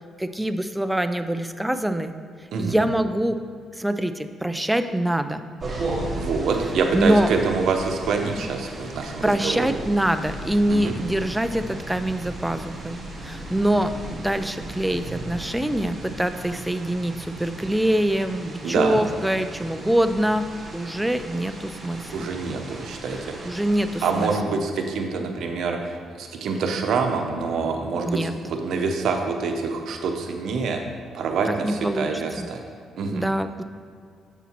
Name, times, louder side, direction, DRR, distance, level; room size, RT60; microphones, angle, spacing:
voice 1, 0.2-2.1 2.6-3.4 3.8-5.4 6.9-7.3 9.2-20.5 20.7-22.3 23.5-24.3 28.1-28.3 31.5-32.1 32.4-32.5 33.1-33.6, right 1 dB, 5° right, 9 dB, 0.4 m, -24 dB
voice 2, 2.5-2.9 6.2-9.7 10.7-10.9 18.6-19.0 22.1-23.6 24.0-30.8 31.1-32.6 33.0-33.2, right 4 dB, 70° right, 3 dB, 0.8 m, -26 dB
sound 1, 5.6-24.3, right 1 dB, 30° right, 1.8 m, -36 dB
7.3 x 6.9 x 3.0 m, 2.3 s
cardioid pair, 90°, 0 cm